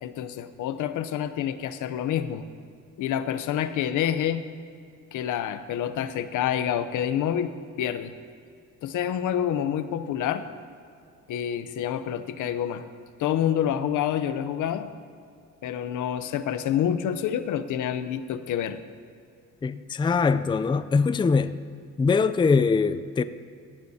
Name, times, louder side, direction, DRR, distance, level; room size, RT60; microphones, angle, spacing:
voice 1, 0.0-2.5 3.0-4.4 5.1-7.5 7.8-8.1 8.8-10.4 11.3-12.8 13.2-14.9 15.6-18.8, left 10 dB, 80° left, 0.8 m, -27 dB
voice 2, 19.6-21.5 22.0-23.2, left 4 dB, 15° left, 0.4 m, -22 dB
17.5 x 14.5 x 2.8 m
cardioid pair, 90°, 30 cm